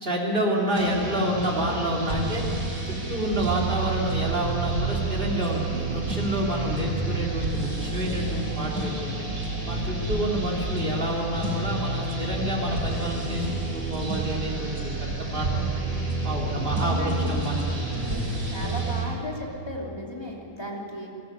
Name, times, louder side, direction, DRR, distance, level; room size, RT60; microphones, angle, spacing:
voice 1, 0.0-2.4 2.9-9.3 9.7-15.7 16.2-17.6 18.1-18.3, right 1 dB, 35° right, -2 dB, 3.5 m, -28 dB
sound 1, 0.7-19.0, right 2 dB, 85° right, 7.0 m, -29 dB
voice 2, 16.4-17.3 17.8-21.1, left 1 dB, 15° left, -2 dB, 2.9 m, -36 dB
22.5 x 14.5 x 9.8 m, 2.7 s
omnidirectional pair, 1.6 m